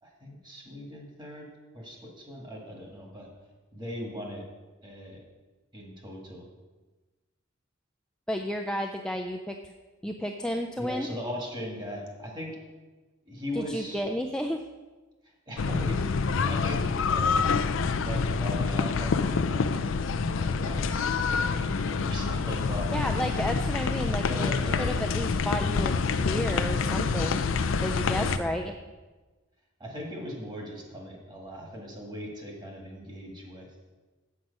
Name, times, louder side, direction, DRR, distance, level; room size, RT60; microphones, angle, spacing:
voice 1, 0.0-1.5 1.7-3.3 3.7-4.4 4.8-5.2 5.7-6.4 10.8-12.5 13.3-14.0 15.5-17.5 18.0-19.7 20.3-20.9 21.3-22.9 24.2-24.9 28.1-28.6 29.8-33.7, equal, 20° right, 0 dB, 1.7 m, -39 dB
voice 2, 8.3-9.6 10.0-11.1 13.6-14.6 22.9-24.5 24.8-26.0 26.2-27.4 27.8-28.7, equal, 5° left, 3 dB, 0.3 m, -32 dB
sound 1, 15.6-28.4, left 4 dB, 70° left, 0.4 m, -27 dB
7.8 x 7.4 x 5.3 m, 1.2 s
head